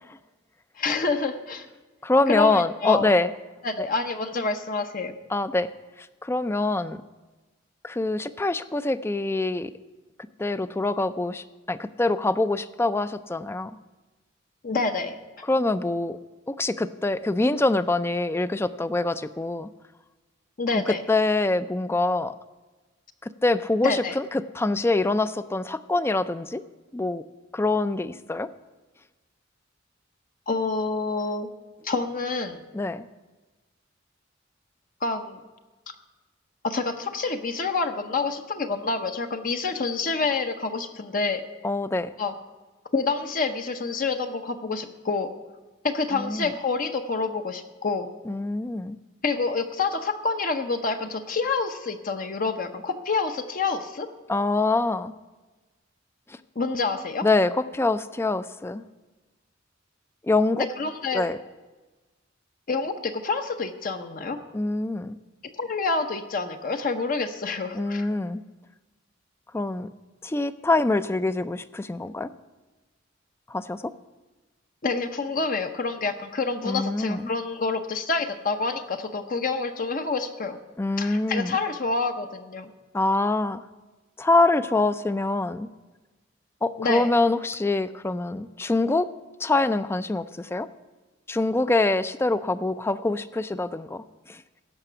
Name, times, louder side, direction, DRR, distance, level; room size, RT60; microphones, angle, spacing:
voice 1, 0.8-1.7 2.3-3.1 3.6-5.1 14.6-15.1 20.6-21.0 23.8-24.2 30.5-31.5 31.8-32.6 35.0-35.4 36.6-41.4 42.2-42.3 42.9-45.3 45.8-48.1 49.2-54.1 56.6-57.3 60.6-61.3 62.7-64.4 65.6-68.1 74.8-80.6 81.0-82.7 86.8-87.1, left 4 dB, 45° left, 6 dB, 0.7 m, -27 dB
voice 2, 2.0-3.3 3.8-3.9 5.3-5.7 6.2-7.0 7.8-9.7 10.4-13.7 15.5-16.2 16.5-19.7 20.7-22.3 23.2-26.6 26.9-27.2 27.5-28.5 32.7-33.0 41.6-42.1 46.1-46.5 48.3-49.0 54.3-55.1 56.3-56.4 57.2-58.8 60.2-60.7 61.1-61.4 64.5-65.2 67.7-68.4 69.5-69.9 70.2-72.3 73.5-73.9 76.6-77.2 80.8-81.6 82.9-83.6 84.2-85.7 86.6-89.1 89.4-90.7 91.3-94.4, left 2 dB, 15° left, 14 dB, 0.3 m, -25 dB
16.0 x 5.9 x 6.7 m, 1.2 s
head